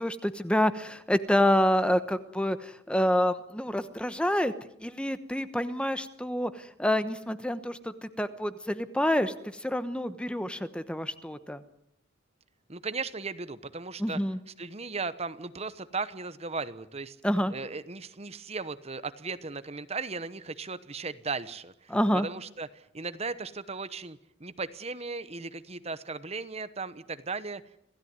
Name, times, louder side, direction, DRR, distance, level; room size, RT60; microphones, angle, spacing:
voice 1, 0.0-4.5 4.8-11.6 14.0-14.4 17.2-17.5 21.9-22.3, left 1 dB, 5° left, 11 dB, 1.1 m, -28 dB
voice 2, 12.7-14.2 14.6-17.2 17.5-27.6, right 4 dB, 30° right, 13 dB, 1.0 m, -37 dB
27.0 x 16.5 x 9.6 m, 0.74 s
head